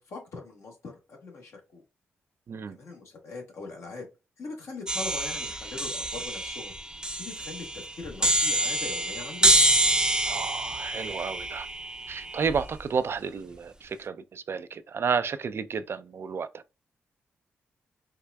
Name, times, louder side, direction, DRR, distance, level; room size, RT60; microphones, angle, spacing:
voice 1, 0.0-1.8 2.8-4.0 4.4-6.7 7.2-9.5, left 4 dB, 70° left, 1.4 m, -41 dB
voice 2, 2.5-2.8 10.2-11.7 12.1-16.6, right 6 dB, 55° right, 0.4 m, -31 dB
sound 1, 4.9-12.8, right 1 dB, 15° right, 0.6 m, -27 dB
4.5 x 2.4 x 2.2 m
supercardioid pair, 45°, 5 cm